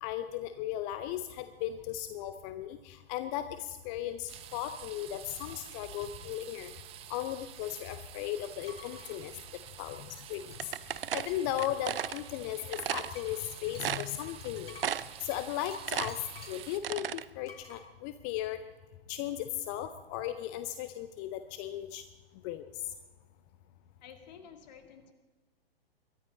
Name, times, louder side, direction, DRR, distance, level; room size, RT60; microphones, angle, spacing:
voice 1, 0.0-6.7 7.1-9.3 9.8-14.8 15.2-18.6 19.1-22.0 22.4-22.7, left 12 dB, 20° left, 11 dB, 0.5 m, -36 dB
sound 1, 4.3-16.8, right 11 dB, 20° right, 0.8 m, -49 dB
sound 2, 8.7-9.2 10.2-11.6 11.9-16.7 17.5-17.8, left 4 dB, 70° left, 3.2 m, -53 dB
sound 3, 10.6-12.2 12.7-13.1 13.5-13.6 13.8-14.5 14.8-15.2 15.6-17.2, right 9 dB, 65° right, 0.6 m, -34 dB
voice 2, 24.0-25.1, left 7 dB, 45° left, 7 dB, 2.2 m, -51 dB
22.5 x 12.5 x 4.1 m, 1.3 s
figure-of-eight pair, 115°, 31 cm